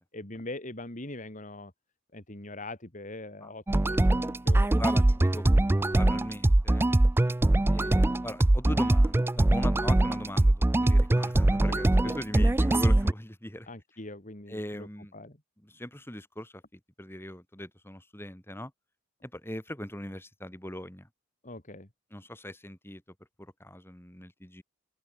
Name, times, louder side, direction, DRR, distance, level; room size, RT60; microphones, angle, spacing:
voice 1, 0.1-1.7 2.1-4.8 11.7-12.7 13.7-15.4 21.4-21.9, left 2 dB, 40° left, 2.8 m, -42 dB
sound 1, 3.7-13.1, right 1 dB, 10° right, 0.3 m, -22 dB
voice 2, 4.6-6.9 7.7-13.7 14.5-15.1 15.6-18.7 19.2-21.1 22.1-23.0 23.6-24.6, left 1 dB, 10° left, 5.7 m, -40 dB
open air
head